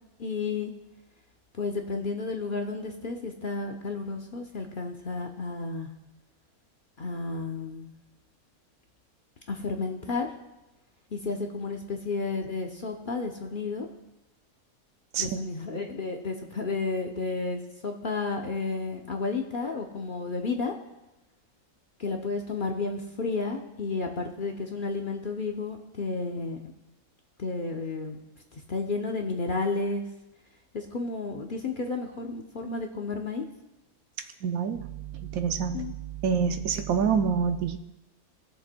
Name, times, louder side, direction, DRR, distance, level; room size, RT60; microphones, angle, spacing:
voice 1, 0.2-0.7 1.6-5.9 7.0-7.9 9.5-10.3 11.1-13.9 15.2-20.7 22.0-26.6 27.4-28.2 28.5-30.0 30.7-33.4 35.7-35.9, left 3 dB, 45° left, 2 dB, 0.8 m, -32 dB
voice 2, 15.1-15.5 34.4-37.8, right 6 dB, 75° right, 8 dB, 1.1 m, -27 dB
20.0 x 6.8 x 2.2 m, 0.98 s
omnidirectional pair, 1.5 m